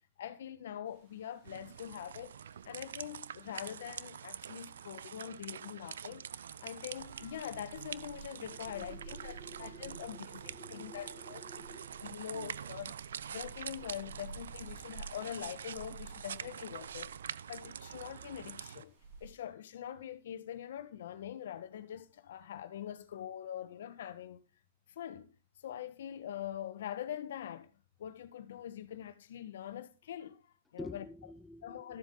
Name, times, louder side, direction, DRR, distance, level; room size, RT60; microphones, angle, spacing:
voice 1, 0.2-2.4 2.6-6.2 6.6-11.4 12.0-13.0 13.3-17.1 17.5-18.9 19.2-24.4 24.9-25.3 25.6-27.7 28.0-31.0 31.6-32.0, left 10 dB, 70° left, 1.4 m, -44 dB
sound 1, 0.8-19.3, right 4 dB, 50° right, 5.2 m, -55 dB
sound 2, 1.4-18.8, right 8 dB, 80° right, 0.4 m, -45 dB
voice 2, 8.7-12.2 30.8-32.0, left 2 dB, 5° left, 0.4 m, -51 dB
13.0 x 7.4 x 3.9 m
hypercardioid pair, 130°, 0 cm